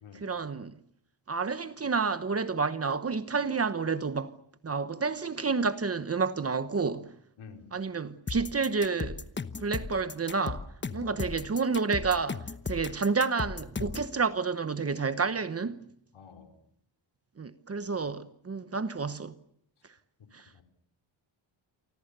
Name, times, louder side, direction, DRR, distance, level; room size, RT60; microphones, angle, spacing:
voice 1, 0.2-0.8 1.3-4.3 4.6-7.1 7.7-9.3 9.6-15.8 17.4-19.3 20.3-20.5, right 4 dB, 30° right, 1.1 m, -30 dB
voice 2, 7.4-7.7 11.0-11.3 13.9-14.0 16.1-16.5 20.5-20.6, left 6 dB, 75° left, 4.5 m, -49 dB
sound 1, 8.3-14.1, left 4 dB, 20° left, 1.0 m, -36 dB
28.5 x 25.0 x 6.8 m
wide cardioid pair, 155°, 49 cm